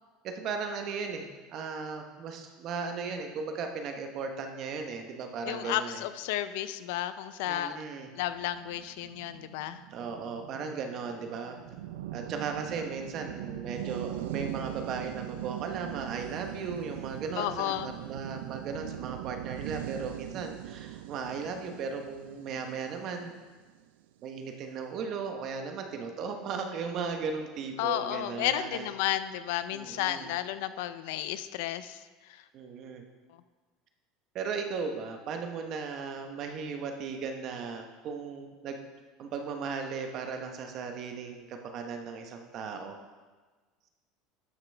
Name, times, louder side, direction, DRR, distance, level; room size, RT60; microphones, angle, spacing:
voice 1, 0.2-6.0 7.5-8.1 9.9-11.6 12.1-23.3 24.2-28.9 29.7-30.3 32.5-33.0 34.3-38.8 39.2-43.0, right 5 dB, 45° right, 5 dB, 0.9 m, -36 dB
voice 2, 5.5-7.8 8.2-9.8 17.4-17.9 27.8-32.0 32.3-32.4, left 13 dB, 75° left, 13 dB, 0.4 m, -32 dB
sound 1, 8.4-23.8, right 12 dB, 90° right, 0.3 m, -41 dB
12.5 x 6.0 x 3.4 m, 1.3 s
supercardioid pair, 145°, 0 cm